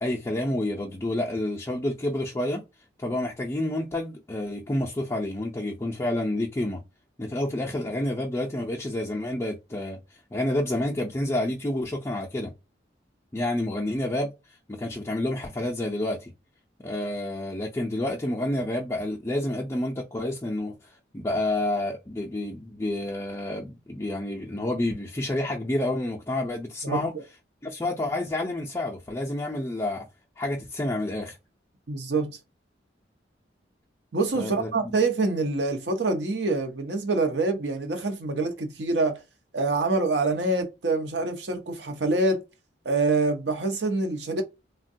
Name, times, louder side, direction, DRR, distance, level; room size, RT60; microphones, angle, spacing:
voice 1, 0.0-2.6 3.0-6.8 7.2-10.0 10.3-12.5 13.3-16.3 16.8-27.1 27.6-30.1 30.4-31.4 34.3-34.7, left 1 dB, 15° left, 0.4 m, -29 dB
voice 2, 31.9-32.4 34.1-39.2 39.5-42.4 42.8-44.4, right 3 dB, 70° right, 0.7 m, -26 dB
3.5 x 2.1 x 2.5 m
head